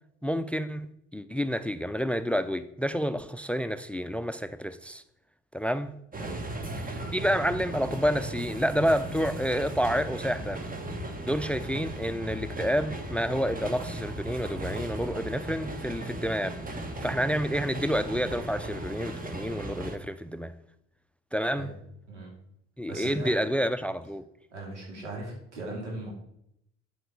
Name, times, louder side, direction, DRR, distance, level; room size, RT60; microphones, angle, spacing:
voice 1, 0.2-5.0 5.5-5.9 6.8-10.7 11.2-16.6 17.0-20.5 21.3-21.7 22.8-24.2, equal, 5° left, 0.6 m, -29 dB
sound 1, 6.1-20.0, right 1 dB, 25° right, 1.6 m, -37 dB
voice 2, 6.2-6.6 21.5-21.7 22.1-22.3 22.9-23.3 24.5-26.1, right 2 dB, 85° right, 3.0 m, -38 dB
9.4 x 7.9 x 4.7 m
figure-of-eight pair, 55°, 34 cm